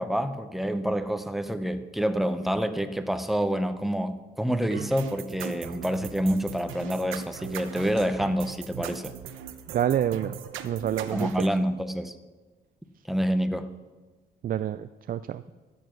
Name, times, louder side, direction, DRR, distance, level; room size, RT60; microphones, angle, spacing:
voice 1, 0.0-9.1 11.1-12.1 13.1-13.7, equal, ahead, 9 dB, 0.8 m, -27 dB
sound 1, 4.7-11.5, right 9 dB, 90° right, 0.8 m, -39 dB
voice 2, 9.7-10.4 10.6-11.5 14.4-15.4, right 10 dB, 45° right, 12 dB, 0.4 m, -28 dB
13.5 x 7.2 x 6.2 m, 1.3 s
cardioid pair, 90°, 20 cm